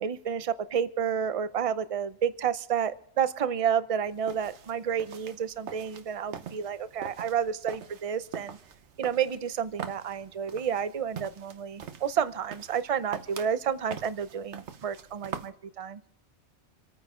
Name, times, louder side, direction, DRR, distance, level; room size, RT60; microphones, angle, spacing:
voice 1, 0.0-8.6 9.0-16.0, right 8 dB, 40° right, 13 dB, 0.6 m, -30 dB
sound 1, 4.1-15.5, right 7 dB, 70° right, 1.2 m, -43 dB
27.5 x 9.4 x 3.7 m, 0.77 s
omnidirectional pair, 1.2 m